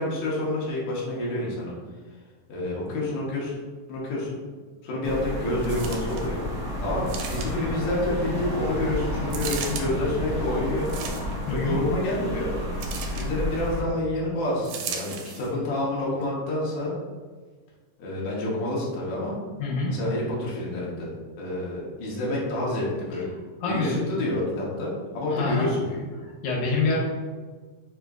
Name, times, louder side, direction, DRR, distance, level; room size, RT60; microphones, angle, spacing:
voice 1, 0.0-1.8 2.5-3.6 3.9-4.4 4.8-6.4 6.8-10.9 11.5-12.5 13.1-16.9 18.0-19.4 19.9-23.3 23.7-26.1, left 1 dB, 70° left, -6 dB, 2.3 m, -28 dB
sound 1, 5.0-13.8, left 1 dB, 55° right, 0.4 m, -31 dB
sound 2, 5.6-6.3 7.1-7.8 9.3-9.9 10.8-11.5 12.8-13.3 14.6-15.5 16.2-16.3, right 7 dB, 85° right, 2.1 m, -36 dB
voice 2, 11.5-11.8 19.6-19.9 23.6-24.1 25.3-25.7 26.2-27.0, left 3 dB, 90° left, -4 dB, 2.3 m, -26 dB
6.4 x 2.5 x 2.4 m, 1.5 s
omnidirectional pair, 3.5 m